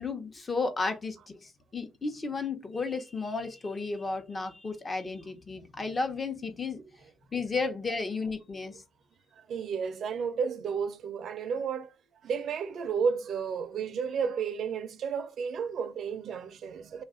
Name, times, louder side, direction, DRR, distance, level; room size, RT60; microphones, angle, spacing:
voice 1, 0.0-6.8 7.3-8.8, left 4 dB, 30° left, 0.9 m, -33 dB
voice 2, 9.3-11.9 12.2-17.0, right 6 dB, 65° right, 0.5 m, -32 dB
3.2 x 2.5 x 3.7 m
cardioid pair, 90°, 0 cm